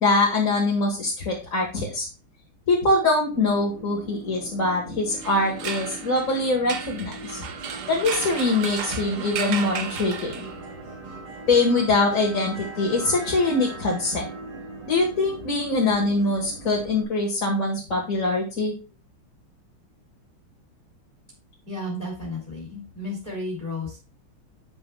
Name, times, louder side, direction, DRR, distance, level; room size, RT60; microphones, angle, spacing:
voice 1, 0.0-2.1 2.7-7.4 7.9-10.3 11.5-14.3 14.9-18.7, left 2 dB, 40° left, -4 dB, 1.9 m, -23 dB
sound 1, 3.3-17.0, right 2 dB, 85° right, 2.9 m, -40 dB
sound 2, 5.1-10.8, right 7 dB, 60° right, 1.2 m, -34 dB
voice 2, 21.6-24.0, left 1 dB, 20° left, -5 dB, 2.8 m, -33 dB
10.5 x 7.0 x 2.3 m, 0.32 s
omnidirectional pair, 2.4 m